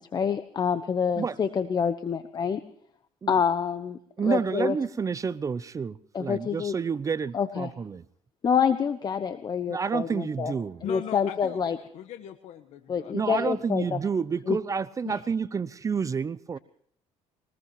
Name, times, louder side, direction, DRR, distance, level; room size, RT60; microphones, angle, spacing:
voice 1, 0.0-2.6 3.3-4.7 6.1-6.7 7.3-7.7 8.4-10.5 10.9-11.8 12.9-14.0 14.5-14.6 15.1-15.2, left 6 dB, 35° left, 1.0 m, -27 dB
voice 2, 4.2-8.0 9.7-10.8 13.1-16.6, right 6 dB, 25° right, 0.6 m, -29 dB
voice 3, 10.8-13.7, left 10 dB, 70° left, 1.2 m, -41 dB
22.5 x 20.0 x 3.1 m
cardioid pair, 120°, 12 cm